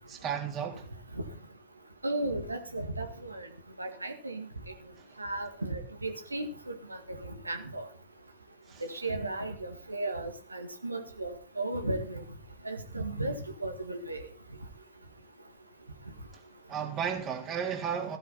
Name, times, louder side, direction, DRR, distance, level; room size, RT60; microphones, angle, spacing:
voice 1, 0.1-0.8 8.7-8.8 16.7-18.2, right 7 dB, 35° right, 3.4 m, -33 dB
voice 2, 2.0-3.5 3.8-4.5 5.2-6.8 7.2-7.9 8.9-12.2 12.7-14.2, right 2 dB, 80° right, 1.9 m, -35 dB
15.0 x 12.5 x 4.1 m
figure-of-eight pair, 90°, 0 cm